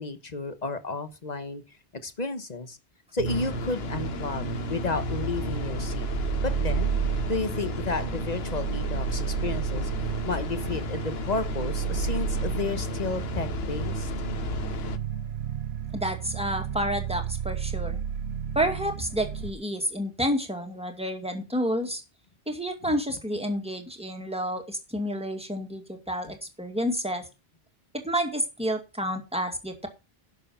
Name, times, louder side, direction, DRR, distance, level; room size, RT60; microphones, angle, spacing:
voice 1, 0.0-1.6 2.0-2.8 3.1-6.0 6.4-6.9 7.2-9.9 10.2-14.1, left 3 dB, 40° left, 10 dB, 1.3 m, -32 dB
sound 1, 3.2-15.0, left 8 dB, 70° left, 1.1 m, -35 dB
sound 2, 3.2-19.5, right 8 dB, 80° right, 1.2 m, -32 dB
voice 2, 15.9-18.0 18.6-22.0 22.5-27.3 28.0-29.9, equal, 5° right, 4 dB, 2.2 m, -30 dB
11.5 x 6.9 x 5.6 m, 0.29 s
omnidirectional pair, 1.1 m